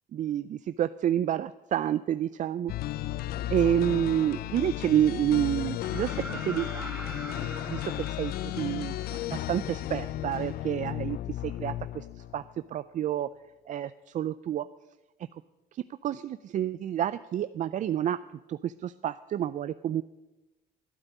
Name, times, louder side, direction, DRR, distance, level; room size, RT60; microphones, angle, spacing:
voice 1, 0.1-2.7 3.5-6.9 7.7-12.1 12.3-12.4 12.7-13.3 13.7-14.7 15.7-18.2 18.5-20.0, right 10 dB, 45° right, 14 dB, 0.4 m, -29 dB
sound 1, 2.7-12.5, left 13 dB, 65° left, 0.5 m, -34 dB
sound 2, 5.8-9.6 11.5-11.6, right 2 dB, 10° right, 1.4 m, -43 dB
12.0 x 8.8 x 9.4 m, 1.1 s
cardioid pair, 110°, 17 cm